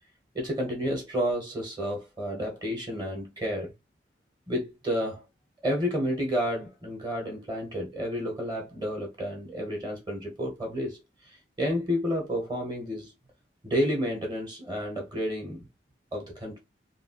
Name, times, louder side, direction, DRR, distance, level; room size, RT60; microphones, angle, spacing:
voice 1, 0.3-3.7 4.5-5.2 5.6-11.0 11.2-13.1 13.6-15.7 16.1-16.6, equal, 25° right, 1.0 m, -30 dB
2.9 x 2.4 x 2.8 m
head